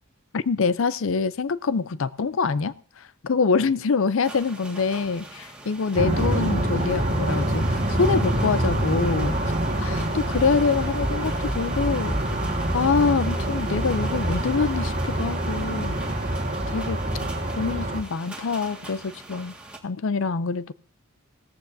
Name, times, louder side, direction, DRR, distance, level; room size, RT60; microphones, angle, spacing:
voice 1, 0.3-9.5 9.8-12.2 12.7-16.0 16.7-17.0 17.6-19.5 19.8-20.7, left 5 dB, 60° left, 0.5 m, -25 dB
sound 1, 4.2-19.8, right 2 dB, 5° right, 1.8 m, -41 dB
sound 2, 6.0-18.0, right 1 dB, 35° right, 1.5 m, -25 dB
17.0 x 14.0 x 2.7 m
head